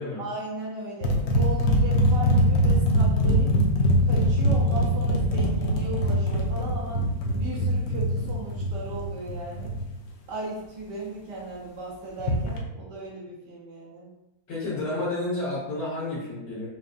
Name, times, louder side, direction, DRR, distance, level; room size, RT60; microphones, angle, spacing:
voice 1, 0.2-3.5 4.0-7.0 7.4-9.7 10.3-14.1, right 2 dB, 75° right, -4 dB, 1.4 m, -36 dB
sound 1, 1.0-9.8 12.2-12.6, equal, 65° left, 1.1 m, -23 dB
voice 2, 14.5-16.7, left 2 dB, 90° left, -11 dB, 2.1 m, -30 dB
5.9 x 2.6 x 2.4 m, 0.93 s
omnidirectional pair, 1.9 m